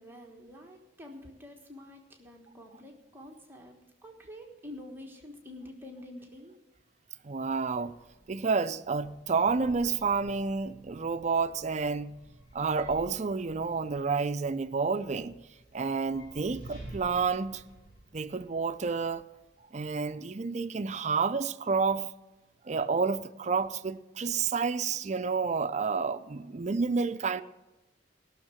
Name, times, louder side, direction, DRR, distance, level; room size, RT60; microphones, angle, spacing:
voice 1, 0.0-3.8 4.0-6.6, left 1 dB, 10° right, 1.3 m, -47 dB
voice 2, 7.2-7.9 8.3-12.1 12.5-15.3 15.7-17.6 18.1-19.2 19.7-22.1 22.6-27.4, right 5 dB, 35° right, 0.5 m, -30 dB
sound 1, 7.4-19.5, right 1 dB, 50° left, 3.6 m, -52 dB
16.5 x 6.5 x 7.6 m
head